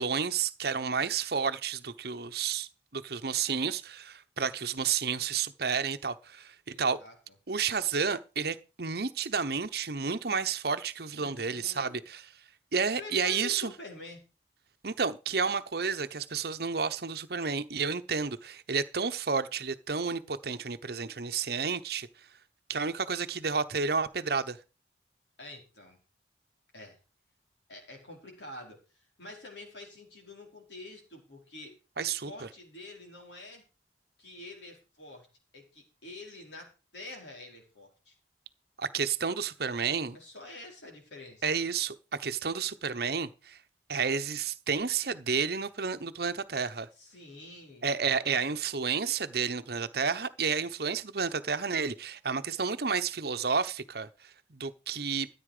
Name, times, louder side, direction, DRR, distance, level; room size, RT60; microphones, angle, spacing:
voice 1, 0.0-7.0 7.5-12.2 12.7-13.7 14.8-22.1 22.7-24.6 32.0-32.5 38.8-40.2 41.4-43.6 43.9-46.9 47.8-55.3, right 5 dB, 55° right, 0.9 m, -31 dB
voice 2, 6.7-7.2 11.1-12.0 12.9-14.2 25.4-26.0 26.7-27.0 27.7-33.6 34.2-35.3 35.5-38.2 40.1-41.5 47.0-47.9, left 2 dB, 75° left, 5.0 m, -47 dB
14.0 x 8.6 x 5.0 m
head